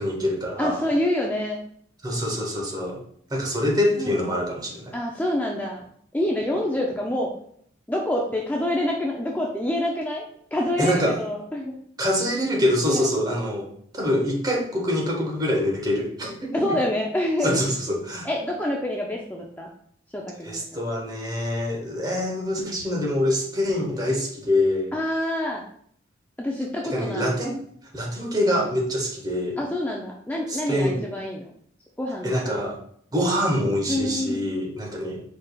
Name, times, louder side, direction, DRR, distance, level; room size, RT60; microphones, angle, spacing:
voice 1, 0.0-0.8 2.0-3.0 3.3-4.9 10.8-11.2 12.0-16.8 17.4-18.3 20.4-24.9 26.9-27.6 27.9-29.6 30.5-31.0 32.2-32.8 33.1-35.4, left 1 dB, 20° right, 0 dB, 0.8 m, -25 dB
voice 2, 0.6-1.6 4.0-4.2 4.9-5.8 6.1-7.3 7.9-10.2 10.5-11.7 12.9-13.1 16.5-17.6 18.2-19.7 20.1-20.8 24.9-25.7 26.4-27.3 29.6-31.5 32.0-32.6 33.9-34.4, left 1 dB, 10° left, -1 dB, 0.4 m, -27 dB
4.8 x 4.6 x 2.3 m, 0.63 s
head